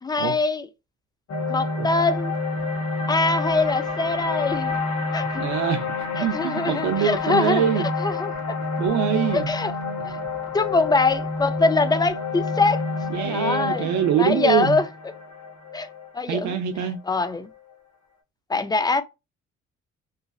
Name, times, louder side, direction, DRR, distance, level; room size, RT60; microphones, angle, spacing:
voice 1, 0.0-0.7 1.5-2.3 3.1-4.8 5.1-5.5 6.2-7.6 8.0-8.3 9.3-9.7 10.0-10.2 10.5-12.8 13.2-14.9 15.7-15.9 16.1-16.5 17.1-17.5 18.5-19.0, left 3 dB, 15° left, 0.4 m, -23 dB
sound 1, 1.3-17.6, left 3 dB, 60° left, 1.1 m, -29 dB
voice 2, 5.4-5.9 6.1-7.9 8.8-9.5 13.1-14.8 16.3-17.0, right 9 dB, 70° right, 0.5 m, -24 dB
3.1 x 2.3 x 2.3 m
cardioid pair, 90°, 30 cm